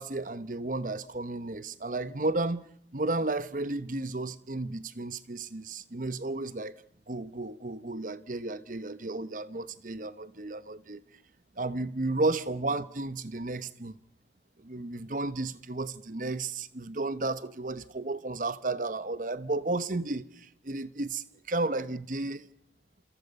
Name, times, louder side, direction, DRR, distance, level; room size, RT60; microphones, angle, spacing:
voice 1, 0.0-6.7 7.1-11.0 11.6-13.9 14.6-22.5, right 2 dB, 45° right, 1.0 m, -33 dB
27.5 x 26.0 x 5.4 m
head